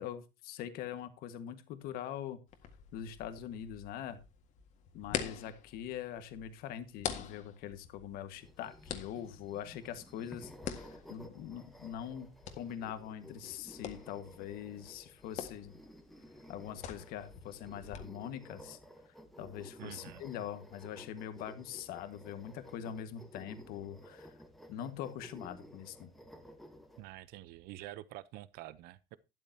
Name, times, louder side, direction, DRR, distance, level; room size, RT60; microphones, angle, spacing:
voice 1, 0.0-2.4 2.9-4.2 4.9-15.7 16.5-18.8 19.4-24.3 24.7-26.1, left 10 dB, 70° left, 1.7 m, -43 dB
sound 1, 2.5-18.0, left 9 dB, 50° left, 1.8 m, -46 dB
sound 2, 8.4-27.1, equal, ahead, 1.5 m, -54 dB
voice 2, 19.8-20.2 27.0-29.2, right 15 dB, 75° right, 0.8 m, -47 dB
12.5 x 12.0 x 2.8 m
cardioid pair, 175°, 16 cm